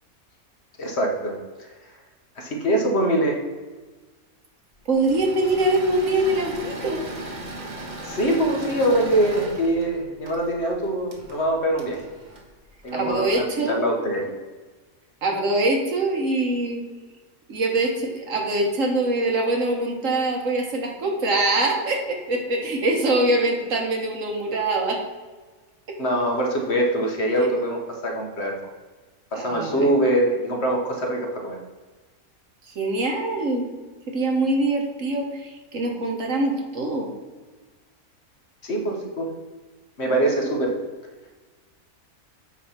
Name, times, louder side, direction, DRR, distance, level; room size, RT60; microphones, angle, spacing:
voice 1, 0.8-1.7 2.4-3.4 8.0-12.0 12.8-14.3 26.0-28.7 29.3-31.6 38.6-39.3 40.0-40.8, right 1 dB, 50° left, 1 dB, 1.3 m, -23 dB
Engine / Mechanisms, 4.9-13.3, right 1 dB, 35° right, 1.1 m, -37 dB
voice 2, 4.9-7.0 12.9-13.8 15.2-16.8 17.5-25.0 27.4-27.5 29.3-29.9 32.7-33.6 34.1-37.1, right 2 dB, 60° right, 1 dB, 1.5 m, -23 dB
8.4 x 3.3 x 5.6 m, 1.3 s
omnidirectional pair, 1.5 m